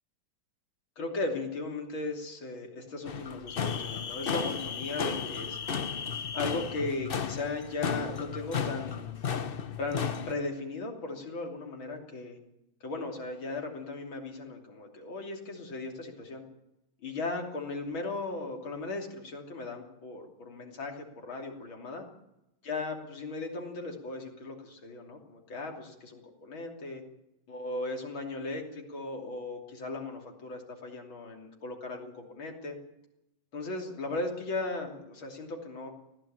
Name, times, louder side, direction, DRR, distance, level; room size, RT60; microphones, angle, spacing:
voice 1, 1.0-5.6 6.3-9.1 9.8-12.4 12.8-16.4 17.0-22.1 22.6-27.0 27.5-32.8 33.5-35.9, left 3 dB, 85° left, 2 dB, 3.8 m, -37 dB
sound 1, 3.1-10.3, left 7 dB, 50° left, 0.7 m, -34 dB
19.0 x 15.5 x 8.9 m, 0.89 s
omnidirectional pair, 2.1 m